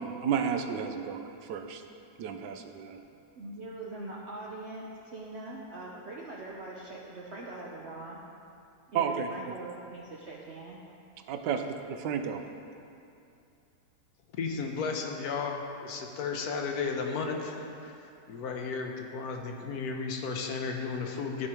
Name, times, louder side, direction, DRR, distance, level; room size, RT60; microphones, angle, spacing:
voice 1, 0.0-1.8 2.2-3.0 8.9-9.5 11.3-12.4, right 7 dB, 80° right, 6 dB, 1.2 m, -32 dB
voice 2, 3.4-8.2 8.9-10.8, right 2 dB, 65° right, -3 dB, 0.6 m, -42 dB
voice 3, 14.4-18.0 18.3-21.5, left 5 dB, 65° left, 2 dB, 1.1 m, -34 dB
14.0 x 4.8 x 2.9 m, 2.6 s
omnidirectional pair, 1.9 m